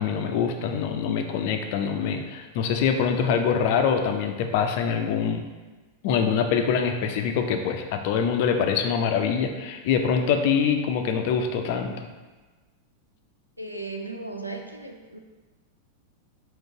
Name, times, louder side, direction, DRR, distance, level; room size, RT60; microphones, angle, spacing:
voice 1, 0.0-5.4 6.0-12.1, left 6 dB, 50° left, 5 dB, 0.4 m, -24 dB
voice 2, 13.6-15.2, right 3 dB, 90° right, 3 dB, 0.4 m, -36 dB
3.8 x 2.5 x 3.6 m, 1.3 s
figure-of-eight pair, 90°, 0 cm